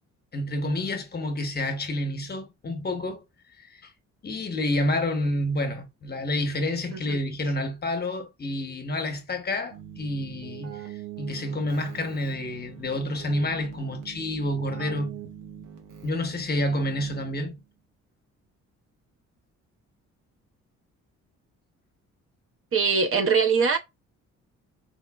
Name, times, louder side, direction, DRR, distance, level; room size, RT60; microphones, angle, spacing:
voice 1, 0.3-3.2 3.7-3.8 4.2-10.9 11.2-15.2 16.0-17.6, left 1 dB, 35° left, 0.9 m, -29 dB
Keyboard (musical), 9.7-17.6, right 10 dB, 80° right, 0.9 m, -42 dB
voice 2, 22.7-23.8, right 5 dB, 45° right, 0.6 m, -22 dB
4.1 x 2.1 x 2.3 m
cardioid pair, 90°, 30 cm